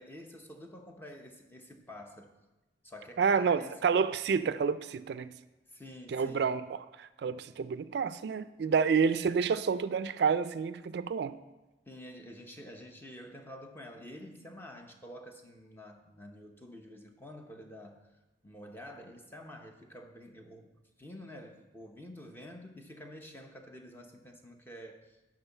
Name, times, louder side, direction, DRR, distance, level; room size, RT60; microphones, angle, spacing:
voice 1, 0.0-2.3 2.8-4.0 5.7-6.5 11.9-18.1 18.4-20.7 21.0-25.2, left 1 dB, 10° left, 3 dB, 0.7 m, -48 dB
voice 2, 3.2-5.3 6.1-11.4, right 6 dB, 65° right, 14 dB, 0.3 m, -29 dB
11.0 x 3.9 x 7.0 m, 1.1 s
head